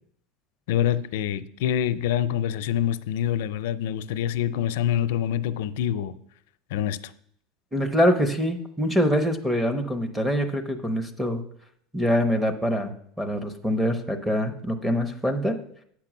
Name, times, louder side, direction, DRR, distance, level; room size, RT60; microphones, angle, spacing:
voice 1, 0.7-6.1 6.7-7.0, left 10 dB, 75° left, 0.5 m, -26 dB
voice 2, 7.7-11.4 11.9-15.6, equal, 5° right, 0.7 m, -24 dB
8.6 x 6.0 x 6.0 m
cardioid pair, 170°, 0 cm